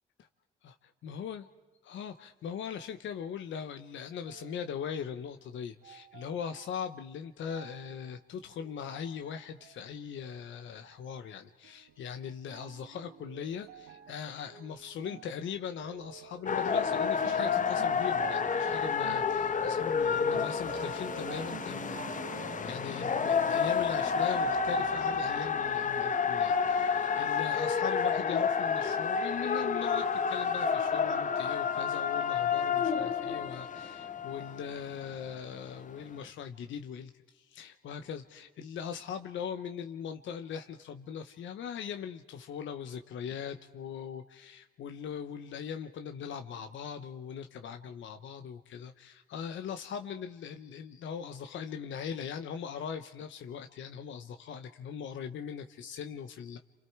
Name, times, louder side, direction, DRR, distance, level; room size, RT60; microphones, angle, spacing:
voice 1, 0.6-1.5 1.8-56.6, left 7 dB, 75° left, 7 dB, 1.1 m, -40 dB
sound 1, 4.2-5.2 5.8-6.9 7.5-8.1 8.5-9.8 10.2-11.0 11.6-12.1 12.5-23.3, right 9 dB, 90° right, 1.5 m, -49 dB
sound 2, 16.5-35.3 36.0-36.1, left 6 dB, 40° left, 1.2 m, -30 dB
28.5 x 26.5 x 4.7 m, 1.2 s
cardioid pair, 90°, 20 cm